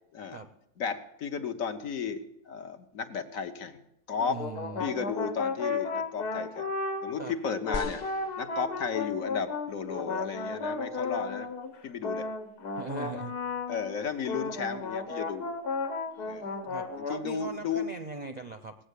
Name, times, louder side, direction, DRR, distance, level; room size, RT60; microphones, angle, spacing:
voice 1, 0.8-3.8 4.1-4.4 4.8-6.7 7.0-8.0 8.4-11.5 11.8-12.3 13.0-13.2 13.7-15.6 16.2-16.5 17.0-17.9, left 6 dB, 60° left, 7 dB, 1.4 m, -34 dB
sound 1, 4.1-7.3 7.6-14.0 14.3-17.2, left 3 dB, 85° left, 1.8 m, -34 dB
voice 2, 4.3-4.9 7.2-7.3 12.8-13.4 16.1-16.2 16.6-18.8, right 4 dB, 45° right, 8 dB, 0.5 m, -40 dB
sound 2, 7.7-9.2 10.0-10.1, left 2 dB, 35° left, 0.9 m, -41 dB
18.0 x 7.8 x 8.3 m, 0.83 s
omnidirectional pair, 1.7 m